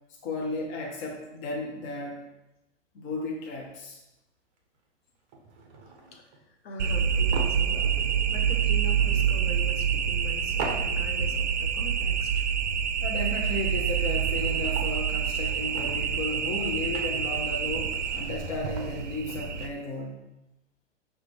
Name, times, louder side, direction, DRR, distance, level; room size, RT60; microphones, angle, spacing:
voice 1, 0.2-2.2 2.9-4.0 13.0-20.2, left 2 dB, 20° left, -1 dB, 0.3 m, -34 dB
sound 1, 3.5-3.8 4.6-4.8 5.3-6.4 7.3-8.5 8.8-8.9 10.6-11.4 11.7-11.8 13.5-13.6 13.8-15.1 15.5-19.0, right 4 dB, 30° right, 0.7 m, -41 dB
voice 2, 6.6-7.9 8.3-12.5, left 2 dB, 55° left, 2 dB, 0.8 m, -42 dB
sound 2, 6.8-19.7, right 7 dB, 75° right, 0.5 m, -27 dB
5.8 x 2.1 x 3.2 m, 0.92 s
hypercardioid pair, 115°, 36 cm